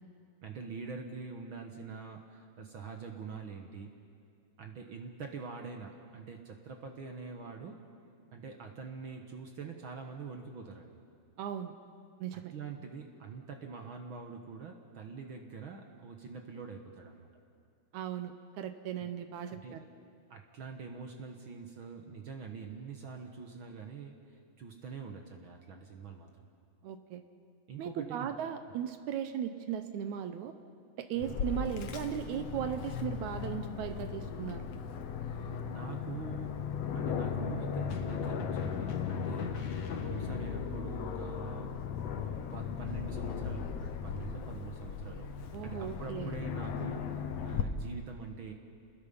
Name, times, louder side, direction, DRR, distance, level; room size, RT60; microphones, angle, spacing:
voice 1, 0.4-3.9 4.6-7.8 8.3-11.0 12.5-17.3 19.0-19.1 19.5-19.8 20.3-26.3 27.7-28.3 31.2-31.4 35.6-36.6 36.9-41.8 42.2-48.5, right 5 dB, 55° right, 3 dB, 1.7 m, -45 dB
voice 2, 11.4-11.7 12.2-12.5 17.9-19.9 26.8-27.2 27.8-30.5 31.0-34.7 45.5-46.3, right 9 dB, 80° right, 9 dB, 2.2 m, -37 dB
Aircraft, 31.2-47.6, left 7 dB, 65° left, 2.0 m, -37 dB
sound 1, 35.2-35.8 37.9-40.6, left 4 dB, 80° left, 3.2 m, -47 dB
29.5 x 20.0 x 5.6 m, 2.3 s
omnidirectional pair, 3.4 m